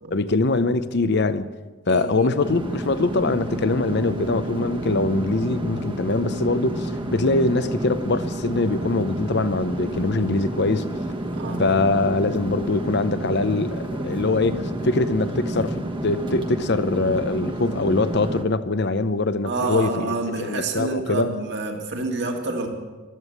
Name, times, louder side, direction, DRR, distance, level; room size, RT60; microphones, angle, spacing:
voice 1, 0.1-1.5 1.9-10.9 11.6-20.1 20.4-21.4, left 3 dB, 55° left, 0.8 m, -23 dB
voice 2, 1.9-2.3 11.3-11.7 19.4-22.7, right 3 dB, 55° right, 2.2 m, -28 dB
sound 1, 2.4-18.4, right 1 dB, 25° right, 1.3 m, -30 dB
15.0 x 13.0 x 7.3 m
head